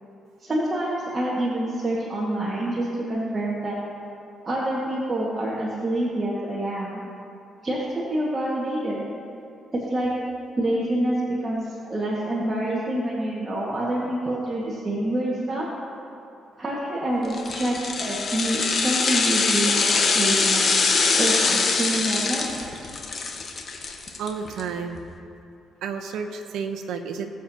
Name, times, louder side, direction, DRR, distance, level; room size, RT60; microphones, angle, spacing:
voice 1, 0.4-3.8 4.4-7.0 7.6-7.8 8.1-9.1 9.7-10.1 10.6-15.7 16.6-20.6 21.2-22.4, right 1 dB, 30° right, -6 dB, 1.8 m, -27 dB
sound 1, 17.3-24.6 24.9-25.0, left 4 dB, 50° left, 1.3 m, -23 dB
voice 2, 24.2-25.0 25.8-27.3, right 6 dB, 80° right, 5 dB, 0.9 m, -31 dB
19.0 x 7.3 x 2.9 m, 2.6 s
cardioid pair, 90°, 0 cm